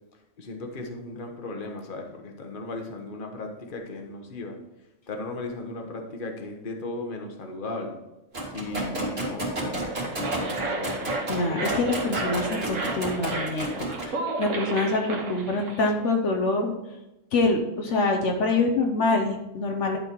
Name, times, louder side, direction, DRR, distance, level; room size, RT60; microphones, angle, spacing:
voice 1, 0.4-4.6 5.1-8.0 8.5-11.7, left 2 dB, 45° left, 3 dB, 1.3 m, -36 dB
sound 1, 8.3-14.1, right 1 dB, 50° right, 2.5 m, -32 dB
Wind instrument woodwind instrument, 8.7-15.3, right 11 dB, 70° right, 2.5 m, -46 dB
sound 2, 9.7-15.9, right 2 dB, 85° right, 1.6 m, -32 dB
voice 2, 11.3-16.7 17.3-20.0, left 3 dB, 70° left, 2 dB, 1.2 m, -25 dB
11.5 x 4.4 x 4.5 m, 0.96 s
omnidirectional pair, 1.3 m